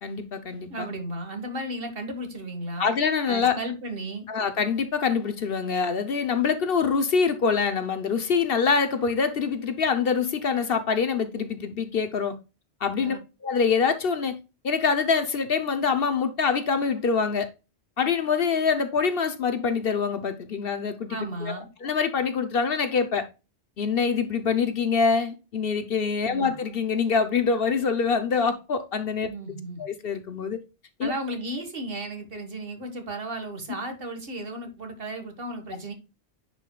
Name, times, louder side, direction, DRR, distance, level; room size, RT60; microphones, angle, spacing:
voice 1, 0.0-0.9 2.8-3.6 4.3-12.3 12.8-13.2 13.4-14.4 14.6-17.5 18.0-23.2 23.8-29.3 29.8-30.6 31.0-31.1, left 5 dB, 60° left, 1.0 m, -25 dB
voice 2, 0.7-2.9 3.3-4.3 13.0-13.2 21.1-21.7 26.3-26.5 29.2-29.8 31.0-35.9, right 1 dB, 55° right, 1.9 m, -34 dB
9.9 x 5.1 x 2.3 m
omnidirectional pair, 1.2 m